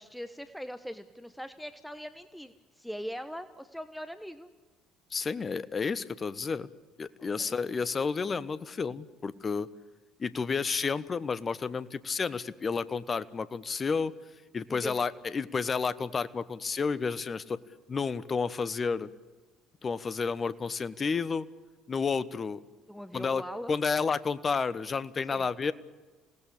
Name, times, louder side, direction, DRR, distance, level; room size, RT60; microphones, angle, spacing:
voice 1, 0.0-4.5 7.4-7.6 14.7-15.0 22.9-23.7 25.3-25.5, equal, ahead, 11 dB, 1.2 m, -41 dB
voice 2, 5.1-6.7 7.0-9.7 10.2-14.1 14.5-17.6 17.9-19.1 19.8-21.5 21.9-22.6 23.1-23.4 23.7-25.7, left 5 dB, 30° left, 16 dB, 1.1 m, -31 dB
27.0 x 18.5 x 8.6 m, 1.3 s
figure-of-eight pair, 55°, 0 cm